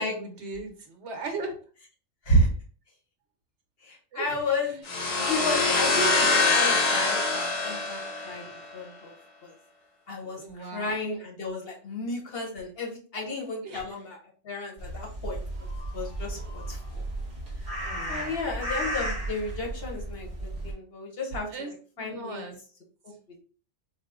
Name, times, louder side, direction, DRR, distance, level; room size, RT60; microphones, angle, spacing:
voice 1, 0.0-1.5 4.1-4.4 5.0-5.3 6.0-6.4 10.2-11.0 13.6-13.9 17.8-18.4 21.5-22.6, right 3 dB, 65° right, 4 dB, 1.0 m, -39 dB
voice 2, 3.8-4.8 5.2-9.1 9.4-9.5 10.1-14.2 14.4-17.0 18.1-21.7 22.0-22.5 23.0-23.1, left 1 dB, 55° left, 1 dB, 1.0 m, -32 dB
sound 1, 4.9-8.6, left 3 dB, 90° left, 1.1 m, -24 dB
sound 2, 14.8-20.7, right 1 dB, 35° right, 0.6 m, -34 dB
4.2 x 2.3 x 2.3 m, 0.41 s
omnidirectional pair, 1.3 m